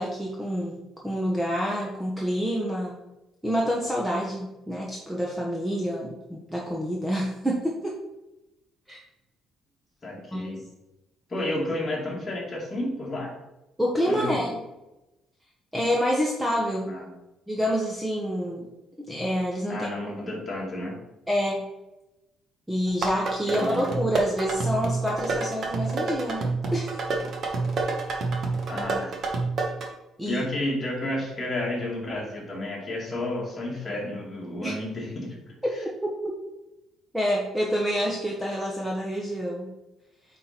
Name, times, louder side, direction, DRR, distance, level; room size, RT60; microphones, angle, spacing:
voice 1, 0.0-3.0 3.4-7.9 8.9-9.0 10.3-10.5 13.8-14.6 15.7-16.9 17.5-18.7 19.1-19.9 21.3-21.7 22.7-27.0 30.2-30.4 34.6-34.8 37.1-39.7, equal, 5° right, -2 dB, 0.9 m, -27 dB
voice 2, 10.0-10.6 11.3-13.4 14.0-14.5 16.9-17.1 19.7-21.0 23.5-23.8 28.7-29.2 30.3-35.5, left 1 dB, 25° left, -3 dB, 2.2 m, -31 dB
sound 1, 22.9-29.9, right 3 dB, 45° right, 1.2 m, -28 dB
8.6 x 3.8 x 4.4 m, 0.96 s
cardioid pair, 155°, 0 cm